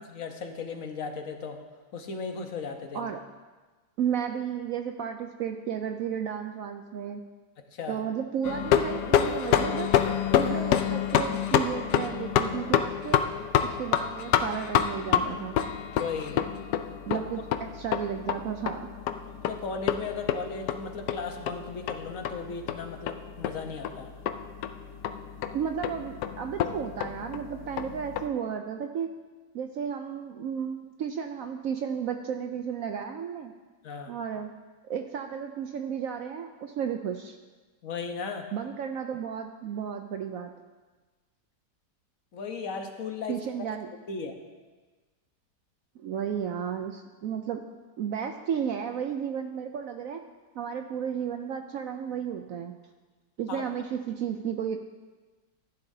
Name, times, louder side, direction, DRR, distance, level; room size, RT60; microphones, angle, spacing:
voice 1, 0.0-1.6 1.9-3.1 7.7-8.0 15.9-16.4 17.1-17.2 19.5-24.1 33.8-34.1 37.8-38.5 42.3-43.7 44.1-44.3 53.5-53.6, left 5 dB, 55° left, 4 dB, 1.3 m, -36 dB
voice 2, 4.0-7.2 7.9-9.9 10.3-13.2 13.6-15.6 17.1-17.4 17.7-18.9 25.5-29.1 29.5-33.5 34.1-34.5 34.8-37.4 38.5-40.5 43.3-43.9 46.0-47.6 48.0-50.2 50.6-52.7 53.4-54.8, right 8 dB, 70° right, 5 dB, 0.9 m, -33 dB
sound 1, 8.4-28.3, left 9 dB, 80° left, 1.2 m, -28 dB
14.5 x 10.5 x 2.7 m, 1.3 s
omnidirectional pair, 1.8 m